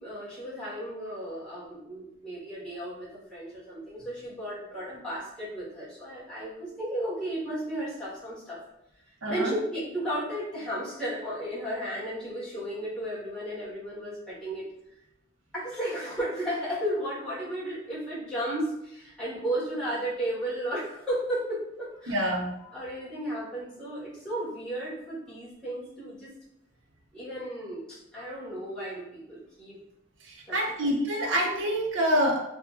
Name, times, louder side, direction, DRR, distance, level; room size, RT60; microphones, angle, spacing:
voice 1, 0.0-8.6 9.3-14.7 15.5-22.4 22.7-26.3 27.1-29.8 30.5-30.9, right 1 dB, 5° left, -12 dB, 1.2 m, -34 dB
voice 2, 9.2-9.5 22.1-22.5 30.5-32.4, equal, 85° right, 0 dB, 0.6 m, -26 dB
2.7 x 2.6 x 2.4 m, 0.83 s
head